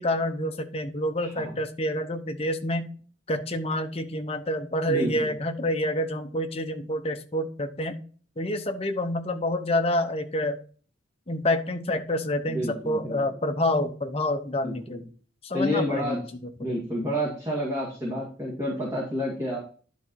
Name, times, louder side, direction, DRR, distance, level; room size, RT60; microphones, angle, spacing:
voice 1, 0.0-2.9 3.3-8.0 8.4-10.6 11.3-15.0 15.4-16.2 16.7-16.8, left 1 dB, 30° left, 5 dB, 0.9 m, -28 dB
voice 2, 1.2-1.5 4.9-5.3 12.5-13.2 14.6-15.0 15.5-16.2 16.6-19.6, equal, 15° right, -5 dB, 2.1 m, -29 dB
11.0 x 4.1 x 4.6 m, 0.42 s
head